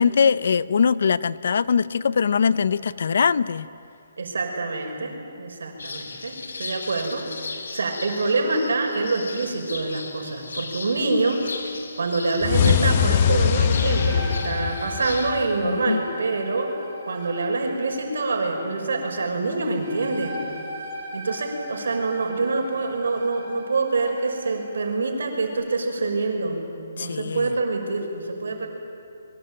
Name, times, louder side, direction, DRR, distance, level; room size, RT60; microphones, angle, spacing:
voice 1, 0.0-3.7 15.6-16.0 27.0-27.5, left 6 dB, 55° left, 18 dB, 0.7 m, -22 dB
voice 2, 4.2-11.7 12.0-16.7 17.1-20.4 21.1-26.7 27.0-28.7, right 3 dB, 75° right, 3 dB, 5.9 m, -26 dB
sound 1, 5.8-15.3, left 4 dB, 85° left, 3.4 m, -37 dB
sound 2, 12.4-15.6, left 8 dB, 25° left, 0.8 m, -21 dB
sound 3, 13.7-25.0, equal, 25° right, 5.3 m, -39 dB
28.0 x 23.5 x 8.9 m, 2.7 s
hypercardioid pair, 175°, 0 cm